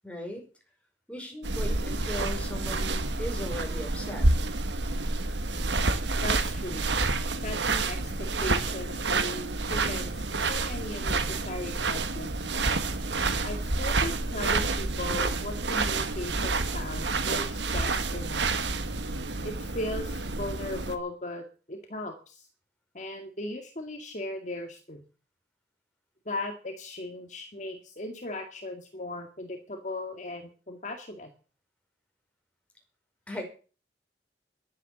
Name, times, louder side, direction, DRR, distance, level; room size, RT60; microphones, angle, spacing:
voice 1, 0.0-0.4 1.1-4.3 33.3-33.4, left 1 dB, 5° left, 1 dB, 5.2 m, -38 dB
sound 1, 1.4-21.0, right 3 dB, 90° right, 1.7 m, -29 dB
voice 2, 6.2-7.0 7.4-12.5 13.4-18.5 19.4-22.5 22.9-25.0 26.3-31.3, left 1 dB, 45° left, 4 dB, 2.0 m, -37 dB
12.0 x 10.0 x 8.7 m, 0.38 s
head